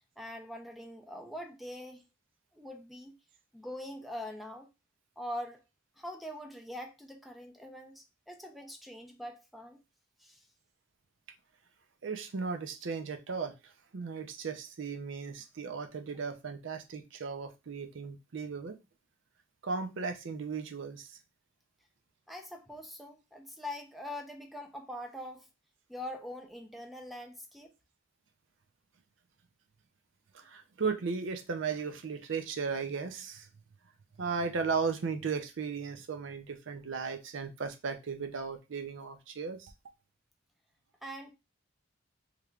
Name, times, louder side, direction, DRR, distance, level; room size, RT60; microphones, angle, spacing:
voice 1, 0.2-2.0 2.5-3.1 3.5-4.7 5.2-5.6 6.0-9.8 10.2-10.5 22.3-25.5 25.9-27.7 41.0-41.3, left 1 dB, ahead, 0.5 m, -43 dB
voice 2, 12.0-13.5 13.9-18.8 19.6-21.2 30.3-33.5 34.2-39.7, right 5 dB, 65° right, 0.5 m, -36 dB
3.3 x 3.2 x 2.4 m
head